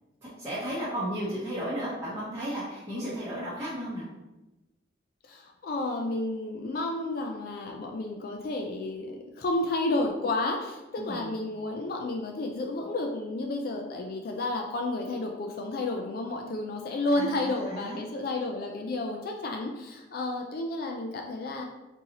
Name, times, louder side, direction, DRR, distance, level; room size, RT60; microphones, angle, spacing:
voice 1, 0.4-4.0 11.0-11.3 17.2-18.0, equal, 15° right, -10 dB, 0.8 m, -34 dB
voice 2, 5.3-21.6, left 2 dB, 50° left, 2 dB, 0.3 m, -31 dB
3.8 x 2.7 x 2.8 m, 1.0 s
head